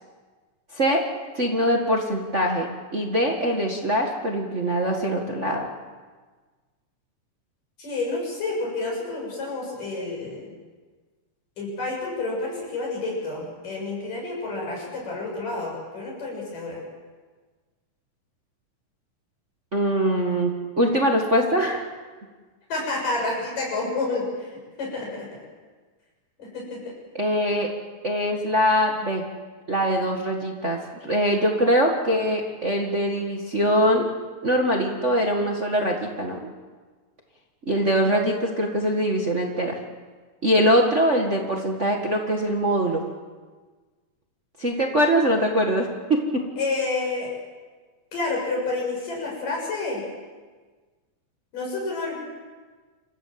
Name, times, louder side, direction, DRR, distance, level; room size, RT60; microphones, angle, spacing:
voice 1, 0.7-1.0 1.3-2.7 2.9-5.7 19.7-20.5 20.8-21.9 27.2-27.7 28.0-29.2 29.7-34.1 34.4-36.5 37.6-39.8 40.4-43.1 44.6-46.4, equal, 30° right, 1 dB, 1.4 m, -22 dB
voice 2, 7.8-10.6 11.6-16.8 22.7-25.4 26.4-26.8 46.6-47.3 48.1-50.0 51.5-52.2, left 3 dB, 90° left, -2 dB, 8.6 m, -29 dB
27.5 x 15.0 x 7.6 m, 1.4 s
omnidirectional pair, 3.7 m